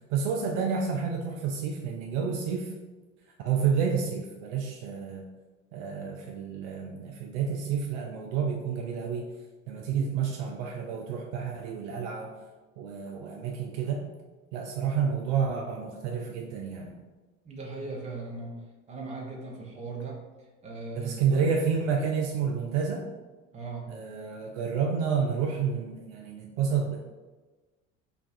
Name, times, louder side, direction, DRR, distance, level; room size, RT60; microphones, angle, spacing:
voice 1, 0.1-2.7 3.4-5.2 5.7-9.3 9.7-12.3 12.8-14.0 14.5-16.9 21.0-23.1 23.9-27.0, right 6 dB, 55° right, 1 dB, 0.5 m, -29 dB
voice 2, 17.4-18.6 18.9-20.2 20.6-21.5 23.5-24.0, right 3 dB, 15° right, -2 dB, 0.6 m, -38 dB
3.2 x 2.2 x 2.5 m, 1.2 s
figure-of-eight pair, 65°, 41 cm